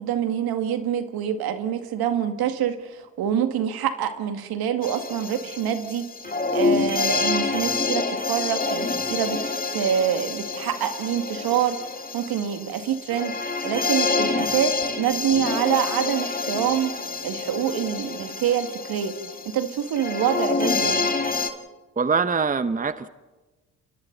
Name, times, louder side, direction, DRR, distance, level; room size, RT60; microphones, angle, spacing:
voice 1, 0.0-6.1 6.5-11.8 12.1-13.4 13.6-16.9 17.2-19.2 19.5-21.1, right 9 dB, 70° right, 7 dB, 2.2 m, -26 dB
sound 1, 4.8-21.5, left 4 dB, 20° left, 2.2 m, -27 dB
voice 2, 22.0-23.1, right 5 dB, 20° right, 12 dB, 1.0 m, -23 dB
30.0 x 25.5 x 4.1 m, 1.2 s
hypercardioid pair, 55°, 38 cm